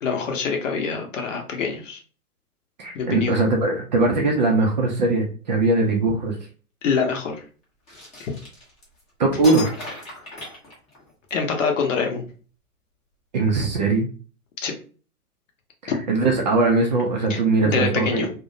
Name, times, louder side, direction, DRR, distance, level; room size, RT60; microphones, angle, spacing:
voice 1, 0.0-2.0 2.9-3.4 6.8-7.4 8.2-8.3 11.3-12.3 14.6-14.7 17.3-17.4 17.6-18.3, left 5 dB, 55° left, 3 dB, 0.8 m, -25 dB
voice 2, 2.8-6.4 9.2-9.7 13.3-14.1 15.8-18.3, right 3 dB, 35° right, 1 dB, 0.4 m, -20 dB
sound 1, 7.9-9.0 9.4-11.3, left 2 dB, 15° left, 0.7 m, -35 dB
2.4 x 2.1 x 2.6 m, 0.39 s
figure-of-eight pair, 115°, 44 cm